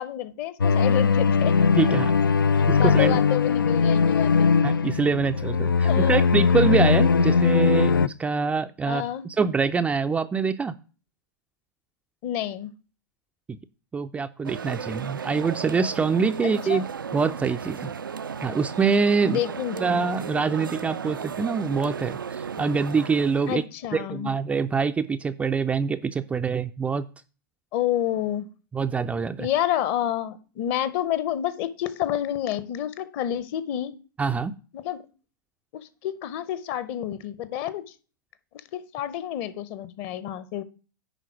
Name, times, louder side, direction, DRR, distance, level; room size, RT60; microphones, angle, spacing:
voice 1, 0.0-1.5 2.5-4.5 5.1-5.3 5.8-6.2 8.9-9.3 12.2-12.7 16.4-16.8 19.2-19.9 23.5-24.3 27.7-28.5 29.4-33.9 34.7-35.0 36.0-37.8 38.7-40.6, left 11 dB, 40° left, 0.9 m, -29 dB
sound 1, 0.6-8.1, left 5 dB, 80° left, 0.4 m, -20 dB
voice 2, 1.8-2.2 2.7-3.2 4.6-10.7 13.5-13.6 13.9-16.9 17.1-17.9 18.4-19.4 19.8-23.6 23.9-27.1 28.7-29.5 34.2-34.5, right 5 dB, 10° right, 0.4 m, -25 dB
sound 2, 14.4-23.6, right 6 dB, 80° right, 0.4 m, -35 dB
10.5 x 3.8 x 6.1 m
figure-of-eight pair, 100°, 11 cm